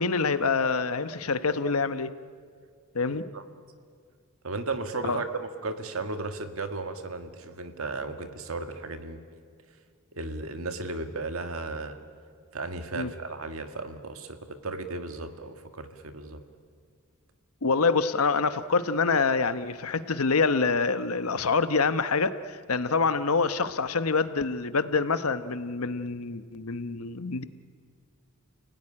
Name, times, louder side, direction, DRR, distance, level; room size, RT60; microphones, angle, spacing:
voice 1, 0.0-2.1 2.9-3.3 5.0-5.2 12.9-13.1 17.6-27.4, left 4 dB, 80° left, 12 dB, 1.0 m, -26 dB
voice 2, 4.4-9.4 10.2-12.0 12.5-14.4 14.6-16.4, right 3 dB, 70° right, 7 dB, 1.9 m, -35 dB
29.5 x 17.5 x 10.0 m, 2.1 s
head